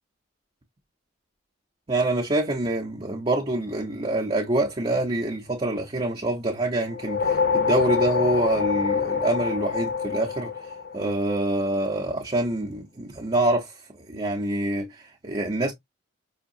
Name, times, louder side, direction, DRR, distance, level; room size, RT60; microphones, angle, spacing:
voice 1, 1.9-10.5 10.9-13.7 14.1-15.7, right 1 dB, 25° right, 0.6 m, -26 dB
sound 1, 6.9-11.5, left 5 dB, 50° left, 0.6 m, -26 dB
4.9 x 2.6 x 2.6 m
head